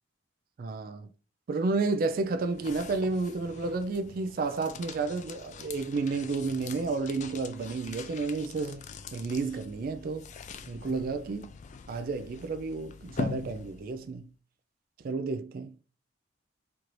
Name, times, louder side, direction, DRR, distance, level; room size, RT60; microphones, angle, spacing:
voice 1, 0.6-1.1 1.5-8.8 9.1-10.3 10.7-11.5 11.9-14.3 15.0-15.8, right 3 dB, 45° right, 0.3 m, -31 dB
sound 1, 1.9-14.1, left 4 dB, 40° left, 0.3 m, -43 dB
4.5 x 2.5 x 3.0 m
head